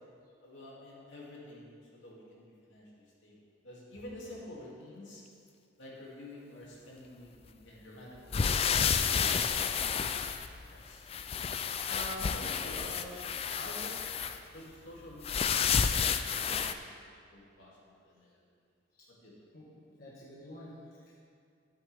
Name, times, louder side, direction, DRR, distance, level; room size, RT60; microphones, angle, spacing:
voice 1, 0.4-3.4 3.6-5.2 5.8-9.0 10.7-11.1 11.8-14.1 14.5-17.8 18.0-18.3 19.2-19.3, left 1 dB, 80° left, -5 dB, 2.7 m, -48 dB
sound 1, 8.3-10.8 11.1-14.4 15.2-16.7, left 6 dB, 30° left, 0.3 m, -30 dB
voice 2, 19.5-21.2, left 1 dB, 50° left, -6 dB, 1.4 m, -51 dB
12.5 x 8.9 x 3.5 m, 2.4 s
head